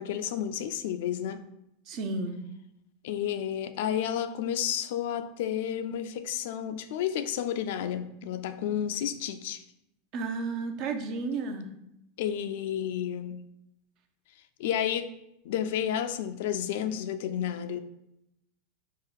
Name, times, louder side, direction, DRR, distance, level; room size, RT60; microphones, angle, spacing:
voice 1, 0.0-1.4 3.0-9.6 12.2-13.4 14.6-15.1 15.4-17.8, left 9 dB, 70° left, 10 dB, 0.3 m, -31 dB
voice 2, 1.9-2.4 10.1-11.7, right 3 dB, 50° right, 5 dB, 0.6 m, -32 dB
3.8 x 2.4 x 4.5 m, 0.83 s
hypercardioid pair, 115°, 0 cm